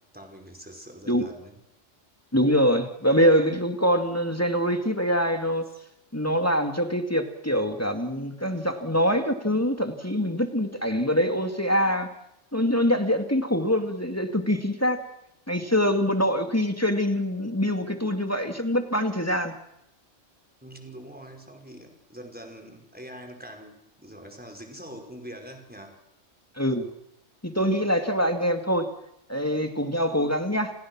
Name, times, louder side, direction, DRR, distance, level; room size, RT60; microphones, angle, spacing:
voice 1, 0.1-1.6 5.7-5.8 20.6-26.0, equal, 5° right, 3 dB, 5.1 m, -44 dB
voice 2, 2.3-5.6 6.1-12.1 12.5-15.0 15.5-19.5 26.6-26.9 27.4-28.9 29.3-30.7, equal, 10° left, 6 dB, 2.3 m, -24 dB
29.5 x 19.0 x 6.2 m, 0.80 s
omnidirectional pair, 1.3 m